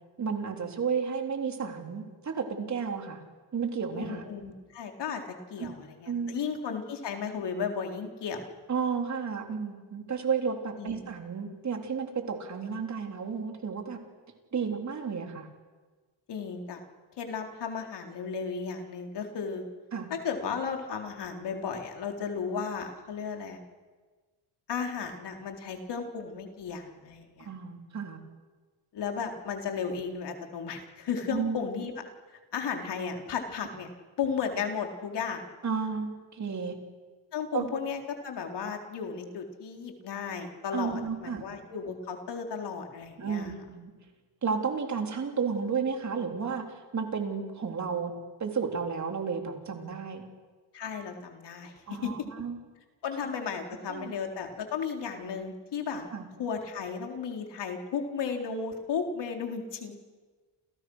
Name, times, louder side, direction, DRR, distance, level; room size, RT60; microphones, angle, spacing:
voice 1, 0.2-3.2 3.5-4.2 5.6-5.7 6.1-6.4 8.7-14.0 14.5-15.5 19.9-20.1 27.4-28.2 31.3-31.6 35.6-36.8 37.5-37.7 40.7-41.4 43.2-43.9 44.4-48.1 48.4-50.2 51.9-52.6 53.9-54.1 56.1-56.3, right 6 dB, 35° right, 3 dB, 3.9 m, -32 dB
voice 2, 3.9-5.2 5.5-8.5 10.8-11.0 16.3-16.8 17.1-19.6 20.1-23.6 24.7-27.5 28.9-31.9 32.5-33.9 34.2-35.5 37.3-43.5 50.7-52.1 53.0-56.1 56.4-60.0, left 6 dB, 60° left, 3 dB, 4.1 m, -34 dB
30.0 x 29.0 x 6.5 m, 1.4 s
cardioid pair, 140°, 47 cm